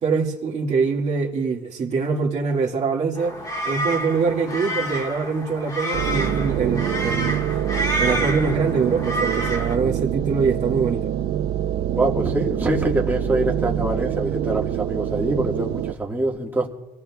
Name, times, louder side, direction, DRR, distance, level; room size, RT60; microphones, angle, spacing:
voice 1, 0.0-3.4 3.6-7.4 8.0-11.1, right 5 dB, 35° right, 2.2 m, -24 dB
sound 1, 3.2-9.7, equal, 20° left, 1.7 m, -28 dB
sound 2, 5.9-15.9, right 10 dB, 60° right, 0.7 m, -25 dB
voice 2, 11.9-16.7, right 1 dB, 10° right, 1.9 m, -24 dB
27.0 x 17.5 x 2.4 m
cardioid pair, 160°, 19 cm